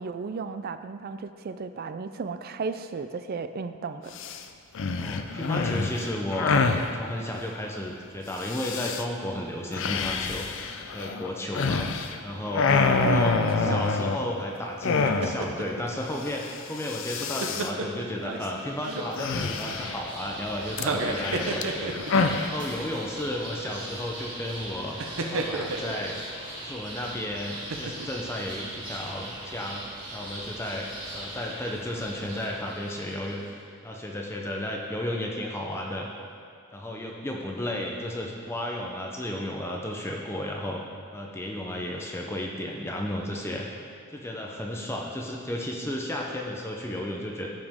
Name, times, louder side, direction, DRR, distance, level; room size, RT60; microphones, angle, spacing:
voice 1, 0.0-4.2 13.0-13.9, right 4 dB, 45° right, 10 dB, 0.3 m, -34 dB
sound 1, 4.1-4.4 4.8-6.9 8.4-9.0 9.7-12.2 12.5-14.4 14.8-15.6 15.9-16.0 16.2-16.5 16.8-17.7 19.2-20.1 20.8-22.5, left 4 dB, 60° left, 0.4 m, -27 dB
voice 2, 4.9-10.4 10.9-11.9 12.2-25.0 25.3-26.2 26.6-30.9 31.1-36.1 36.7-40.8 41.1-43.7 44.1-47.5, left 1 dB, 10° left, 0 dB, 0.6 m, -33 dB
sound 2, 15.1-15.8 17.0-18.5 18.8-19.5 20.7-22.3 22.9-23.1 25.0-25.9 27.5-28.2 28.6-28.8, right 3 dB, 65° right, 0.7 m, -32 dB
sound 3, 18.4-33.5, right 1 dB, 20° right, 2.0 m, -40 dB
14.0 x 5.1 x 3.6 m, 2.3 s
head